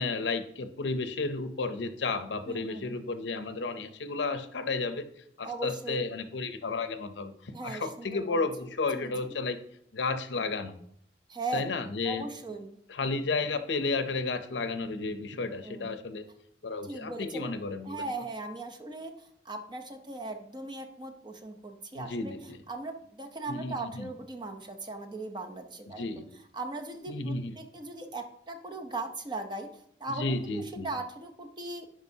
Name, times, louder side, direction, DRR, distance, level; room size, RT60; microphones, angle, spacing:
voice 1, 0.0-5.1 5.4-9.6 9.9-10.8 11.5-12.2 12.9-16.2 16.6-18.0 22.0-22.6 23.5-24.1 26.0-26.3 27.1-27.5 30.2-30.9, left 3 dB, 75° left, 9 dB, 0.6 m, -32 dB
voice 2, 2.5-3.0 5.4-6.1 7.5-8.5 8.9-9.1 11.3-11.6 12.0-12.8 15.6-15.9 16.8-17.5 17.8-22.4 22.7-26.0 26.5-29.7 30.0-31.9, right 2 dB, 25° right, 4 dB, 0.7 m, -38 dB
10.5 x 5.1 x 2.8 m, 0.67 s
head